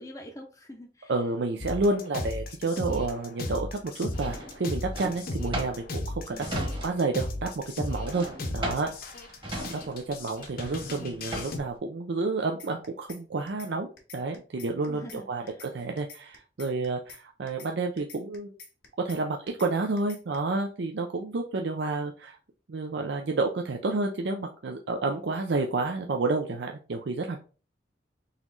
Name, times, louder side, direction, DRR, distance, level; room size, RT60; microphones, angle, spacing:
voice 1, 0.0-1.1 6.3-6.7 14.9-15.6, left 1 dB, 20° left, -1 dB, 0.6 m, -45 dB
voice 2, 1.1-7.5 7.7-8.3 8.5-9.3 9.7-18.5 19.0-22.4 22.7-27.4, right 3 dB, 70° right, 3 dB, 0.5 m, -30 dB
sound 1, 1.6-11.6, left 2 dB, 55° left, 0.9 m, -36 dB
Drawer open or close, 4.1-7.2 7.5-11.7, right 1 dB, 30° right, 1.3 m, -37 dB
sound 2, 12.6-13.2 13.5-13.7 14.0-15.2 15.5-15.7 16.0-17.2 17.5-17.7 18.0-19.2 19.5-19.7 20.0-20.4, left 5 dB, 85° left, 1.5 m, -47 dB
4.0 x 3.0 x 3.9 m, 0.36 s
head